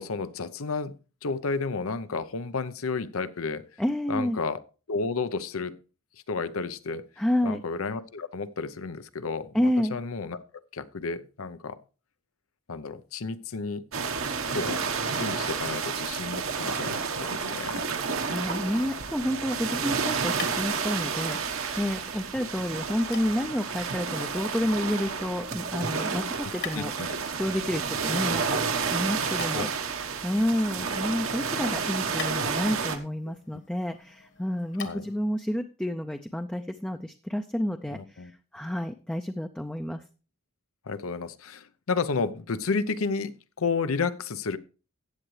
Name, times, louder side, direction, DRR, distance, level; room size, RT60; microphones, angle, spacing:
voice 1, 0.0-3.6 4.1-4.6 4.9-5.7 6.3-7.1 7.4-10.4 10.7-11.8 12.7-13.8 14.5-14.8 15.2-17.9 26.4-27.1 29.5-29.7 30.8-30.9 34.8-35.0 37.9-38.3 40.9-44.6, left 4 dB, 90° left, 13 dB, 0.7 m, -32 dB
voice 2, 3.8-4.4 7.2-7.6 9.5-10.0 17.9-29.7 30.2-40.0, left 1 dB, 5° left, 6 dB, 0.4 m, -30 dB
sound 1, 13.9-33.0, right 5 dB, 80° right, 1.3 m, -30 dB
sound 2, 19.7-35.3, left 7 dB, 60° left, 1.6 m, -47 dB
15.0 x 8.8 x 3.2 m, 0.35 s
head